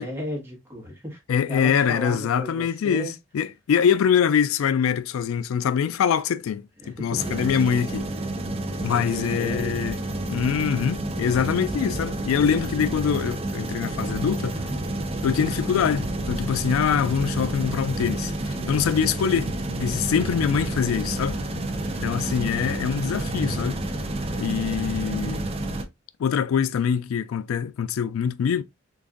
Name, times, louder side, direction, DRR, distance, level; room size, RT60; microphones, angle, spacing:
voice 1, 0.0-1.2 1.5-3.1 6.8-7.5 8.8-10.0 21.9-22.2, equal, 10° right, 1.4 m, -35 dB
voice 2, 1.3-8.0 8.8-10.0 10.3-14.6 15.2-19.5 19.8-21.4 22.0-23.8 24.4-25.4 26.2-28.6, left 7 dB, 85° left, 0.3 m, -24 dB
sound 1, 7.2-25.8, right 1 dB, 30° right, 0.5 m, -29 dB
3.9 x 3.4 x 2.4 m
head